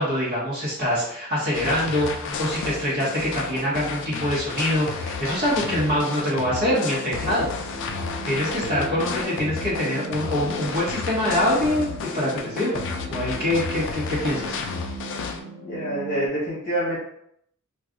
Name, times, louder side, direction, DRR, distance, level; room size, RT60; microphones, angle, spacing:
voice 1, 0.0-7.5 8.2-12.8 13.1-14.5, left 1 dB, 45° right, -8 dB, 1.1 m, -24 dB
sound 1, 1.5-15.4, left 5 dB, 60° left, 0.4 m, -32 dB
sound 2, 5.9-16.3, right 2 dB, 70° right, 0.6 m, -38 dB
voice 2, 15.6-17.0, right 1 dB, 25° left, -7 dB, 1.0 m, -27 dB
2.4 x 2.3 x 3.7 m, 0.73 s
head